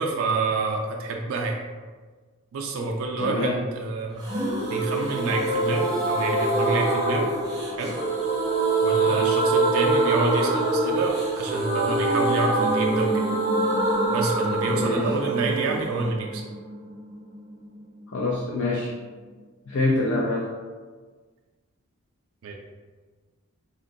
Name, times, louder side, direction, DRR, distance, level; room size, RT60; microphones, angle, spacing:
voice 1, 0.0-1.6 2.5-4.3 4.7-7.3 7.8-7.9 8.8-13.2 14.1-16.4 22.4-22.6, right 3 dB, 75° right, 1 dB, 0.3 m, -28 dB
voice 2, 3.2-3.6 9.0-9.3 14.8-15.1 18.1-18.9 19.7-20.5, left 2 dB, 65° left, -4 dB, 0.4 m, -26 dB
sound 1, 4.2-17.8 18.1-18.2 18.4-18.5, right 2 dB, 20° right, 0.5 m, -24 dB
3.6 x 2.2 x 2.6 m, 1.4 s
head